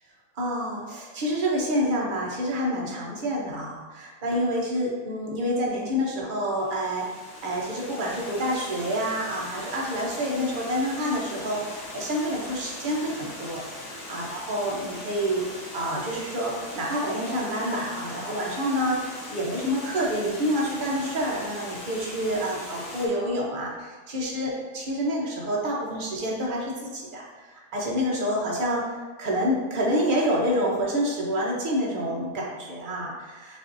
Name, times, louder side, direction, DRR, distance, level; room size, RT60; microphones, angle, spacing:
voice 1, 0.4-7.0 7.4-13.6 14.1-15.4 15.7-28.9 29.2-33.6, equal, 40° right, -3 dB, 0.8 m, -28 dB
Water, 6.6-23.1, left 1 dB, 35° left, 1.1 m, -40 dB
7.5 x 2.7 x 2.6 m, 1.4 s
omnidirectional pair, 1.7 m